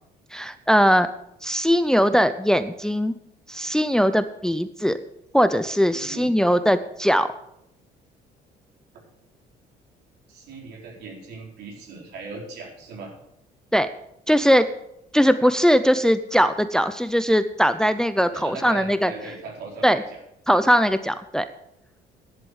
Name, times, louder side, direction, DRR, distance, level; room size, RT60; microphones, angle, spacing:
voice 1, 0.3-1.1 1.4-3.1 3.5-5.0 5.3-7.3 13.7-13.9 14.3-14.7 15.1-19.1 19.8-20.0 20.5-21.5, equal, 5° left, 11 dB, 0.6 m, -20 dB
voice 2, 5.9-6.3 10.3-13.1 18.3-20.2, right 4 dB, 75° right, 0 dB, 4.2 m, -38 dB
10.5 x 8.2 x 7.1 m, 0.77 s
cardioid pair, 110°, 17 cm